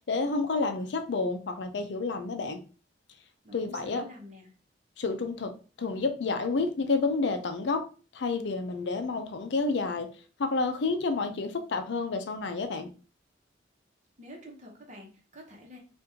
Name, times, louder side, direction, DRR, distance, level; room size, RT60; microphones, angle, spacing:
voice 1, 0.1-2.6 3.5-4.0 5.0-5.5 5.8-7.8 8.1-10.1 10.4-12.9, left 3 dB, 70° left, 8 dB, 0.5 m, -29 dB
voice 2, 3.4-4.5 14.2-15.8, left 1 dB, 40° right, 0 dB, 1.0 m, -48 dB
2.9 x 2.5 x 3.5 m, 0.36 s
head